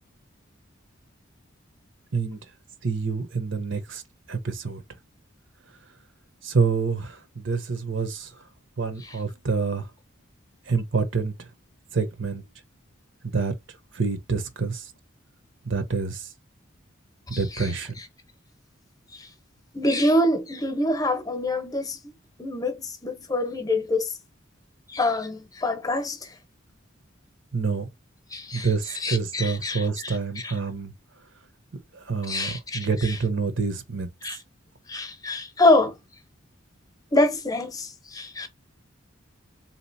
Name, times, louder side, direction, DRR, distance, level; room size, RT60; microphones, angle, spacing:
voice 1, 2.8-4.0 4.3-4.8 6.4-8.3 8.8-9.9 10.7-11.3 11.9-12.4 13.2-13.5 13.9-14.8 15.7-16.3 17.3-17.9 27.5-27.9 28.5-30.9 31.9-34.1, right 4 dB, 60° right, 0.9 m, -27 dB
voice 2, 17.3-17.7 19.1-19.3 19.7-22.0 22.4-24.1 24.9-26.3 28.3-30.2 30.4-30.5 32.3-33.2 34.2-34.4 34.9-36.0 37.1-38.5, left 2 dB, 20° left, 0.9 m, -25 dB
3.8 x 2.9 x 4.0 m
head